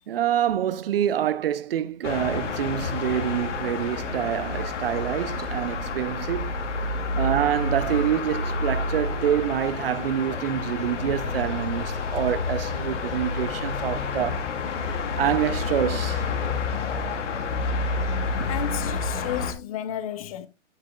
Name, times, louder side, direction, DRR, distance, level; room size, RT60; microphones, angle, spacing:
voice 1, 0.1-6.5 7.1-14.5 15.2-16.3, right 10 dB, 50° right, 0.7 m, -26 dB
sound 1, 2.0-19.5, left 3 dB, 75° left, 2.4 m, -29 dB
sound 2, 5.3-13.2, right 4 dB, 30° right, 1.7 m, -46 dB
voice 2, 18.4-20.5, left 10 dB, 30° left, 0.8 m, -32 dB
15.0 x 6.6 x 2.3 m
hypercardioid pair, 155°, 36 cm